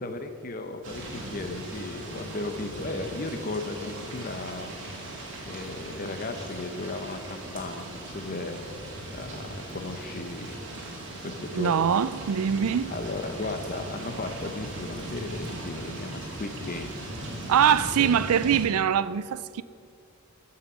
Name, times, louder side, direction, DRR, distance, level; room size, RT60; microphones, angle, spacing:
voice 1, 0.0-4.8 5.5-8.6 9.1-10.5 11.2-11.7 12.9-17.0 18.0-18.1, left 2 dB, 40° left, 0.7 m, -35 dB
sound 1, 0.8-18.7, right 1 dB, 55° right, 2.3 m, -39 dB
voice 2, 11.5-12.9 17.5-19.6, right 8 dB, 80° right, 0.4 m, -23 dB
15.0 x 5.7 x 6.1 m
head